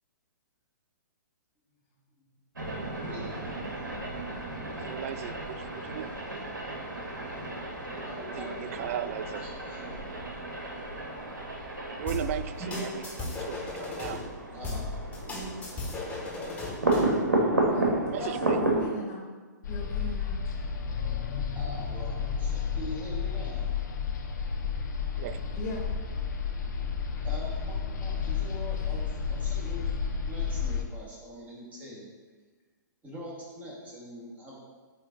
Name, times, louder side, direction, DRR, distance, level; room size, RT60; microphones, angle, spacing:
sound 1, 2.5-18.9, right 2 dB, 85° right, 1.5 m, -32 dB
voice 1, 3.0-3.4 7.9-9.0 9.4-9.9 12.7-12.8 14.5-14.9 21.5-23.6 27.2-27.7 28.0-29.9 30.3-32.1 33.0-34.6, left 1 dB, 15° right, -5 dB, 2.0 m, -43 dB
voice 2, 4.9-6.1 8.4-9.5 12.0-12.9 13.2-14.2 18.1-18.6 25.2-25.4, right 10 dB, 45° right, 13 dB, 0.4 m, -36 dB
Drum Synth, 12.1-14.2 14.6-17.2, left 3 dB, 15° left, 1.8 m, -35 dB
voice 3, 17.7-19.2 19.7-20.6 25.5-25.8, left 1 dB, 40° left, -3 dB, 1.7 m, -37 dB
sound 2, 19.6-30.8, left 6 dB, 65° left, 0.9 m, -31 dB
8.6 x 3.3 x 3.9 m, 1.4 s
hypercardioid pair, 120°, 10 cm